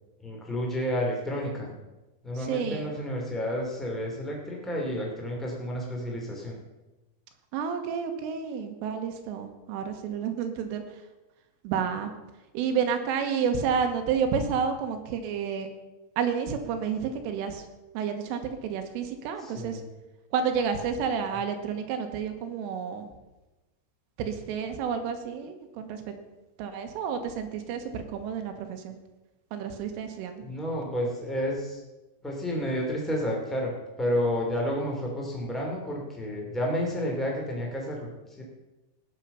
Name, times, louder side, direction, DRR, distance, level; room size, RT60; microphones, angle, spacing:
voice 1, 0.2-1.7 2.2-6.6 19.4-19.9 30.4-31.8 32.2-33.7 34.0-38.1 38.4-38.5, equal, ahead, -2 dB, 1.4 m, -30 dB
voice 2, 2.4-3.0 7.5-11.0 11.6-12.1 12.5-15.7 16.2-17.7 18.0-19.8 20.3-23.1 24.2-26.2 26.6-29.0 29.5-30.4, right 6 dB, 80° right, 6 dB, 3.7 m, -30 dB
19.0 x 7.3 x 5.7 m, 1.1 s
omnidirectional pair, 5.8 m